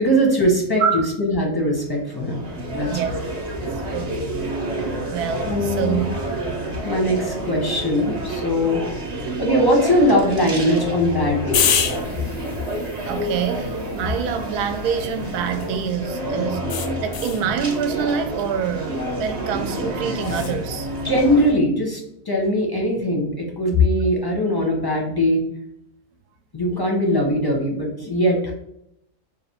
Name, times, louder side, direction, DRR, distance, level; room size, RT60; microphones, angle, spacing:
voice 1, 0.0-3.1 5.4-6.0 6.8-8.8 9.4-11.9 21.0-25.4 26.5-28.5, equal, 25° left, 0.5 m, -21 dB
sound 1, 1.8-21.5, right 1 dB, 50° right, 0.5 m, -29 dB
voice 2, 2.9-3.4 3.9-4.3 5.1-6.0 13.1-16.7 17.0-20.9, right 7 dB, 80° right, 1.1 m, -26 dB
sound 2, 11.5-15.9 16.7-17.5 20.2-20.6, left 8 dB, 70° left, 0.7 m, -28 dB
4.9 x 2.3 x 3.4 m
omnidirectional pair, 1.6 m